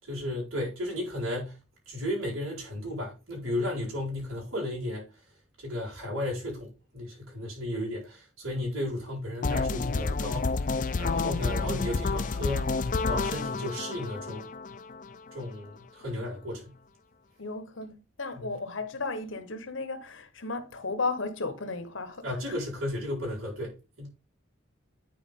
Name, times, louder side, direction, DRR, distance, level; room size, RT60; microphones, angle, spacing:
voice 1, 0.0-1.6 1.9-5.0 5.6-10.7 11.0-14.5 15.3-16.8 18.3-18.5 22.2-24.1, left 1 dB, 90° right, 4.8 m, -34 dB
sound 1, 9.4-15.4, left 4 dB, 40° left, 0.4 m, -30 dB
voice 2, 17.4-22.3, left 3 dB, 70° left, 1.1 m, -34 dB
9.6 x 4.5 x 3.6 m
head